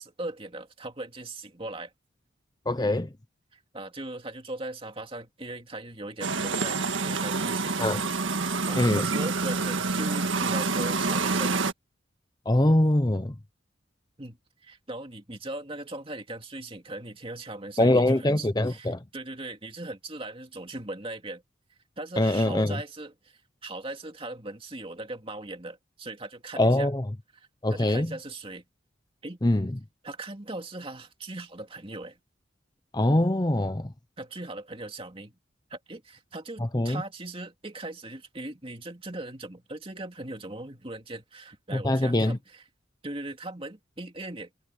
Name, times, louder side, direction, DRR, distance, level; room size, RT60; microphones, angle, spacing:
voice 1, 0.0-1.9 3.5-7.9 8.7-11.7 14.2-21.4 22.0-26.9 27.3-28.6 29.2-29.4 30.0-32.2 34.2-35.4 35.7-42.6 43.0-44.7, right 2 dB, 30° right, 2.5 m, -39 dB
voice 2, 2.7-3.1 7.8-8.0 8.7-9.0 12.5-13.3 17.8-19.0 22.2-22.8 26.6-27.0 27.6-28.1 29.4-29.7 32.9-33.9 36.7-37.0 41.7-42.4, left 1 dB, 20° left, 0.8 m, -23 dB
sound 1, 6.2-11.7, right 4 dB, 80° right, 1.7 m, -27 dB
head